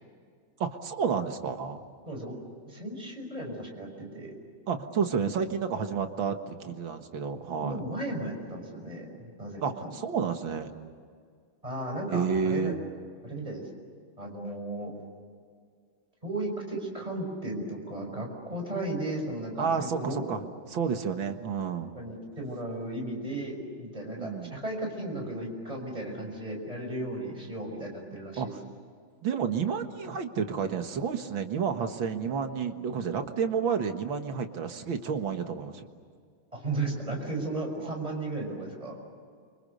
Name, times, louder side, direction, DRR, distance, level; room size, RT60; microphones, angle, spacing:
voice 1, 0.6-1.8 4.7-7.8 9.6-10.7 12.1-12.8 19.6-20.4 20.7-21.9 24.2-24.5 28.4-28.5 29.2-35.9, right 6 dB, 70° right, 6 dB, 2.3 m, -30 dB
voice 2, 2.6-4.3 7.6-9.9 11.6-12.7 13.2-13.7 14.2-14.9 16.2-20.3 21.9-28.5 32.2-32.3 36.5-39.0, right 2 dB, 15° right, 1 dB, 6.2 m, -35 dB
30.0 x 25.5 x 6.7 m, 2.1 s
omnidirectional pair, 2.2 m